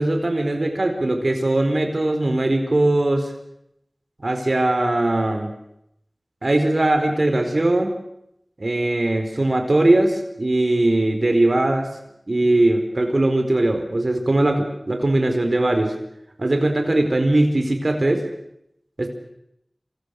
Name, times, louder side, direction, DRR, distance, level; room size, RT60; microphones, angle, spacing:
voice 1, 0.0-3.3 4.2-5.5 6.4-7.9 8.6-11.9 12.3-15.9 16.4-18.2 19.0-19.1, right 1 dB, 60° right, 5 dB, 4.3 m, -20 dB
27.0 x 26.0 x 6.5 m, 0.80 s
wide cardioid pair, 45°, 0 cm